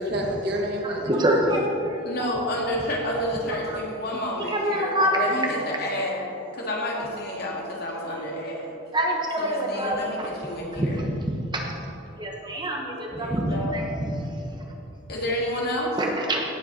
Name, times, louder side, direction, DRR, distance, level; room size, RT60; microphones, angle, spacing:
voice 1, 0.0-1.4 5.0-5.8, equal, 55° right, 0 dB, 1.8 m, -30 dB
voice 2, 1.1-2.0 4.5-5.3 8.9-10.3 10.8-10.9 11.5-11.6 12.2-13.8 16.0-16.4, right 1 dB, 25° right, 0 dB, 1.1 m, -25 dB
voice 3, 2.0-6.3 6.5-8.8 9.4-11.0 13.2-13.8 15.1-16.0, left 1 dB, 55° left, -3 dB, 2.5 m, -30 dB
17.5 x 7.7 x 4.3 m, 3.0 s
head